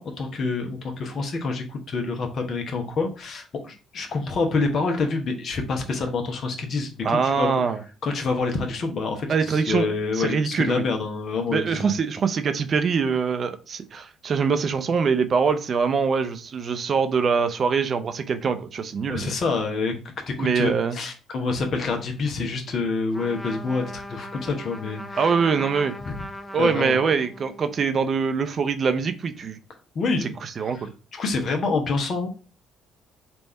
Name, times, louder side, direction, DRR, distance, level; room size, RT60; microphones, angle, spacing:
voice 1, 0.0-7.6 8.0-12.0 19.1-20.0 20.3-25.3 26.1-26.2 26.6-27.0 29.9-30.3 30.7-30.8 31.1-32.5, left 4 dB, 50° left, 3 dB, 0.9 m, -27 dB
voice 2, 7.0-7.8 9.3-10.8 11.5-19.3 20.4-21.0 25.2-25.9 26.5-29.6 30.2-30.9, right 5 dB, 45° right, 9 dB, 0.5 m, -24 dB
Trumpet, 23.1-27.7, left 1 dB, 10° left, 0.5 m, -39 dB
3.4 x 2.6 x 4.3 m, 0.35 s
hypercardioid pair, 50°, 0 cm